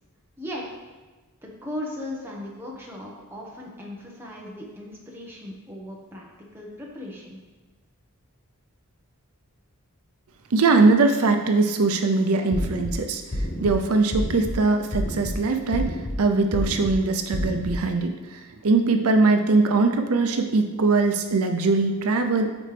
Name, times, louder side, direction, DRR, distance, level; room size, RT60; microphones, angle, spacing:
voice 1, 1.4-6.3 6.5-7.4, left 1 dB, 10° right, -3 dB, 1.2 m, -37 dB
voice 2, 10.5-22.5, right 3 dB, 80° right, 5 dB, 0.6 m, -21 dB
sound 1, 12.5-12.9 13.3-13.7 14.1-14.5 14.9-15.3 15.7-16.1 16.5-16.9 17.3-17.7, equal, 35° left, 0.9 m, -28 dB
12.5 x 4.3 x 3.4 m, 1.3 s
head